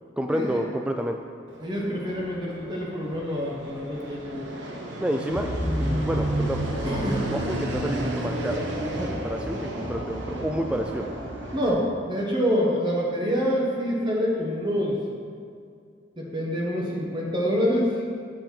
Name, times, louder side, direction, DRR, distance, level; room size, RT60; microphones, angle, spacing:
voice 1, 0.2-1.2 5.0-5.5 5.8-6.6 7.3-8.7 8.9-11.1, equal, 5° right, 3 dB, 0.3 m, -29 dB
Fixed-wing aircraft airplane, 1.5-11.7, right 1 dB, 70° right, 1.1 m, -32 dB
voice 2, 1.6-4.5 6.8-7.3 11.5-15.0 16.2-18.0, equal, 25° right, -3 dB, 1.1 m, -26 dB
sound 1, 5.3-11.6, equal, 10° left, 1.4 m, -34 dB
8.4 x 7.7 x 4.5 m, 2.3 s
head